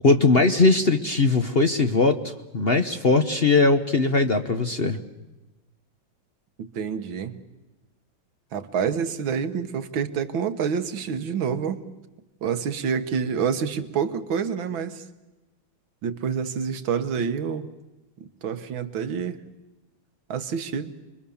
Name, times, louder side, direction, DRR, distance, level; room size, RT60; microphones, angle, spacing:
voice 1, 0.0-5.0, left 3 dB, 40° left, 7 dB, 1.0 m, -20 dB
voice 2, 6.6-7.4 8.5-11.8 12.4-15.0 16.0-17.7 18.4-19.4 20.3-20.9, right 7 dB, 80° right, 9 dB, 2.0 m, -27 dB
29.0 x 22.5 x 7.1 m, 1.1 s
omnidirectional pair, 2.1 m